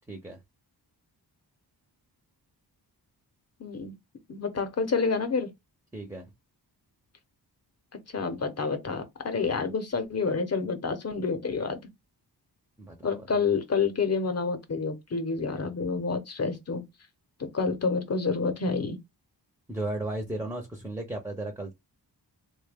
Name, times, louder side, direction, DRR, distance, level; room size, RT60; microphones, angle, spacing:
voice 1, 0.1-0.4 5.9-6.3 12.8-13.3 19.7-21.7, right 2 dB, 5° right, 0.5 m, -35 dB
voice 2, 3.6-3.9 4.3-5.5 8.1-11.8 13.0-16.8 17.4-19.0, left 4 dB, 35° left, 0.7 m, -28 dB
3.5 x 2.2 x 3.4 m
wide cardioid pair, 155°, 42 cm